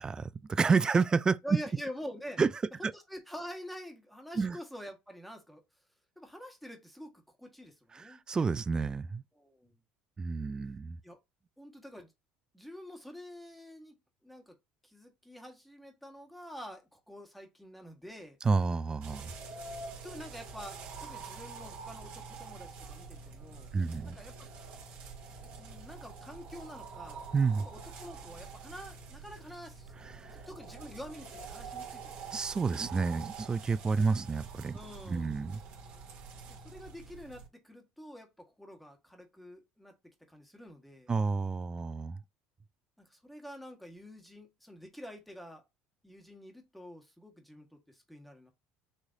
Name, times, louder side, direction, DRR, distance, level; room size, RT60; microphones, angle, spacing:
voice 1, 0.0-1.4 2.4-2.5 2.8-2.9 4.4-4.6 7.9-9.2 10.2-11.0 18.4-19.3 23.7-24.2 27.3-27.7 30.2-30.4 32.3-34.8 35.1-35.6 41.1-42.2, right 4 dB, 25° right, 0.4 m, -30 dB
voice 2, 1.4-2.4 2.8-5.6 6.2-8.2 9.3-9.8 11.0-11.2 11.6-12.1 12.5-14.0 14.2-14.6 14.8-18.4 20.0-23.7 24.0-24.5 25.6-27.2 27.6-29.9 30.3-32.2 34.7-35.5 36.5-39.9 40.2-41.1 43.0-45.6 46.0-48.5, equal, ahead, 1.5 m, -47 dB
sound 1, 19.0-37.5, right 4 dB, 65° right, 2.2 m, -46 dB
6.3 x 3.2 x 2.7 m
supercardioid pair, 95°, 3 cm